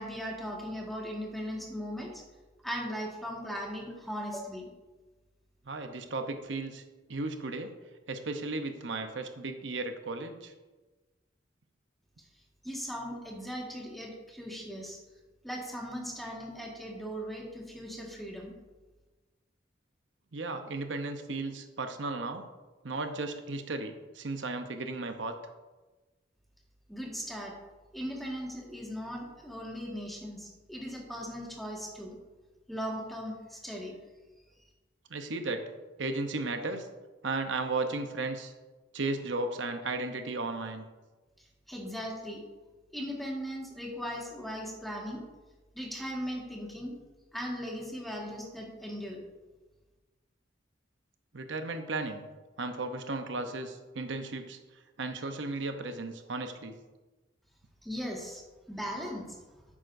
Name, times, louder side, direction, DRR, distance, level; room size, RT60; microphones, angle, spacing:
voice 1, 0.0-2.2 2.6-4.7 12.6-15.0 15.4-18.5 26.9-27.5 27.9-32.1 32.7-33.9 41.7-42.4 42.9-45.2 45.7-47.0 47.3-49.2 57.8-58.4 58.7-59.4, equal, ahead, -2 dB, 1.7 m, -38 dB
voice 2, 5.7-6.8 7.1-7.8 8.1-10.5 20.3-22.5 22.8-25.3 35.1-35.7 36.0-36.9 37.2-38.5 38.9-40.8 51.3-52.2 52.6-54.6 55.0-56.7, right 3 dB, 80° right, 6 dB, 0.8 m, -35 dB
11.0 x 8.7 x 2.6 m, 1.2 s
head